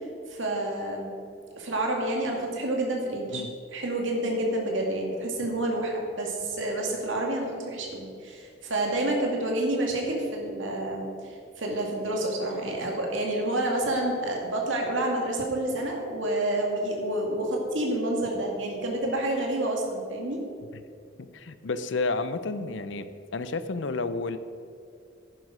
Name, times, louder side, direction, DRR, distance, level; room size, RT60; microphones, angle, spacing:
voice 1, 0.3-1.1 1.6-3.4 3.7-20.4, right 1 dB, 85° right, 0 dB, 2.2 m, -29 dB
voice 2, 21.2-23.1 23.3-24.4, left 3 dB, 75° left, 12 dB, 0.6 m, -31 dB
11.0 x 10.5 x 5.0 m, 2.4 s
head